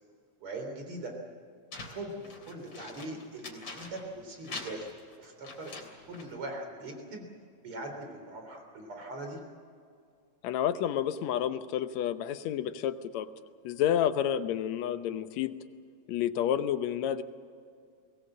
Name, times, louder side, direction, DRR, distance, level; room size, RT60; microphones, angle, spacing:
voice 1, 0.4-1.1 1.8-4.9 5.2-7.3 7.6-9.4, right 2 dB, 45° right, 4 dB, 4.3 m, -41 dB
sound 1, 1.7-4.2 4.4-6.4, left 3 dB, 40° left, 3.8 m, -44 dB
voice 2, 10.4-13.3 13.6-15.5 16.1-17.2, left 10 dB, 75° left, 11 dB, 2.1 m, -30 dB
22.5 x 19.0 x 7.5 m, 2.2 s
omnidirectional pair, 3.4 m